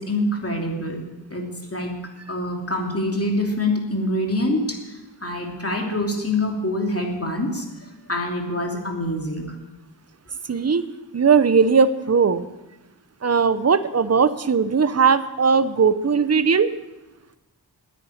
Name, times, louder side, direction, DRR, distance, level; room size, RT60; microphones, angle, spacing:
voice 1, 0.0-9.6, left 1 dB, 35° left, 1 dB, 2.9 m, -26 dB
voice 2, 10.5-10.9 11.1-12.5 13.2-16.7, right 5 dB, 35° right, 13 dB, 0.8 m, -18 dB
9.6 x 9.4 x 9.4 m, 1.0 s
cardioid pair, 50°, 42 cm